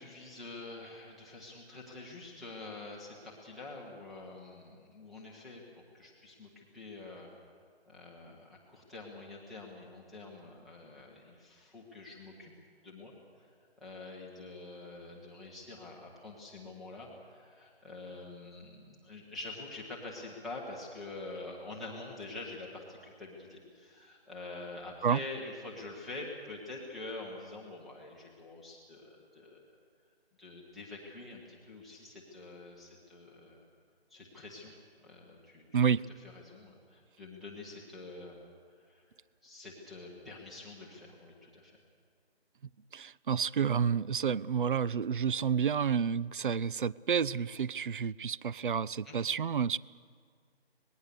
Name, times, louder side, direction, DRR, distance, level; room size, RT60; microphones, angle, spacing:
voice 1, 0.0-7.3 7.9-12.5 12.8-13.5 13.8-29.6 30.4-33.6 34.1-34.7 35.0-35.8 36.3-38.4 38.8-39.0 39.4-41.7 49.0-49.2, left 2 dB, ahead, -5 dB, 0.8 m, -46 dB
voice 2, 35.7-36.1 42.9-49.8, right 7 dB, 55° right, 21 dB, 0.5 m, -30 dB
25.5 x 19.5 x 6.8 m, 2.1 s
figure-of-eight pair, 160°, 32 cm